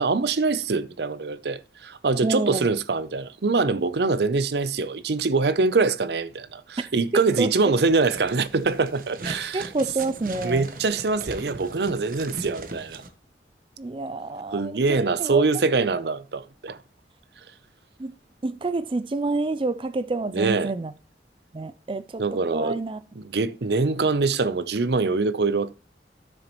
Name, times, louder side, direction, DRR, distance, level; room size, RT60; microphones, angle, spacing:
voice 1, 0.0-9.7 10.4-13.0 14.5-16.8 20.3-20.7 22.2-22.8 23.2-25.7, right 4 dB, 70° right, 0.6 m, -24 dB
voice 2, 2.2-2.7 7.1-7.5 9.2-10.7 13.8-15.4 15.8-15.9 18.0-18.1 18.4-20.9 21.5-23.0, right 3 dB, 30° right, 0.4 m, -28 dB
sound 1, 7.9-13.1, right 2 dB, 50° right, 1.1 m, -39 dB
12.5 x 6.5 x 3.1 m
head